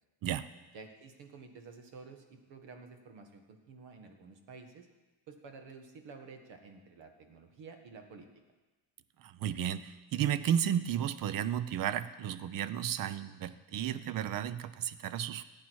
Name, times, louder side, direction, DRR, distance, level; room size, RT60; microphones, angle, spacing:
voice 1, 0.7-4.9 5.3-8.3, right 4 dB, 65° right, 5 dB, 1.7 m, -51 dB
voice 2, 9.2-15.4, right 10 dB, 45° right, 14 dB, 0.6 m, -33 dB
15.0 x 9.0 x 4.7 m, 1.2 s
cardioid pair, 150°, 46 cm